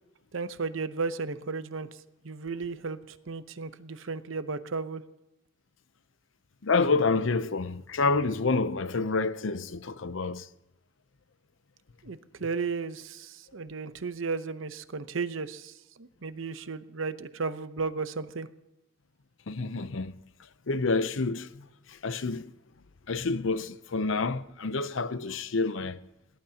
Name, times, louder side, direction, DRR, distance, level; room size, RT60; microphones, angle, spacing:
voice 1, 0.3-1.9 2.2-3.0 3.3-5.0 12.0-15.7 16.0-18.5, right 4 dB, 70° right, 0.8 m, -34 dB
voice 2, 6.6-10.5 19.5-20.1 20.7-22.5 23.1-26.0, left 3 dB, 70° left, 0.7 m, -28 dB
22.0 x 18.0 x 2.9 m
head